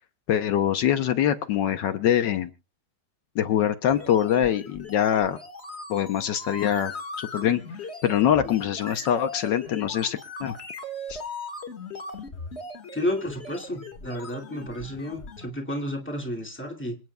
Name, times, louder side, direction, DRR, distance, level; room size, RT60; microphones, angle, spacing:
voice 1, 0.3-2.5 3.3-5.4 5.9-7.6 8.0-10.5 11.1-11.2, left 10 dB, 75° left, 9 dB, 1.5 m, -24 dB
sound 1, 3.9-15.5, left 3 dB, 35° left, 2.0 m, -39 dB
voice 2, 12.9-17.0, left 1 dB, 5° left, 0 dB, 2.3 m, -31 dB
26.5 x 9.3 x 2.3 m, 0.32 s
omnidirectional pair, 2.0 m